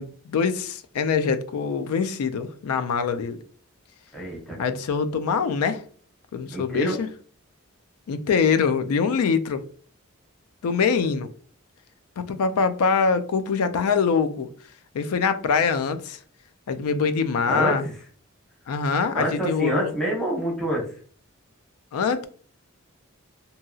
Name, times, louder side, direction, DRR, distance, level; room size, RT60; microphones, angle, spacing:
voice 1, 0.0-3.4 4.6-5.8 6.3-7.1 8.1-9.6 10.6-11.3 12.2-14.5 14.9-16.2 16.7-17.8 18.7-19.9 21.9-22.3, left 5 dB, 85° left, 0.4 m, -24 dB
voice 2, 4.1-4.6 6.5-7.0 17.5-17.9 19.1-20.8, right 1 dB, 5° left, 0.8 m, -26 dB
2.8 x 2.7 x 2.3 m
head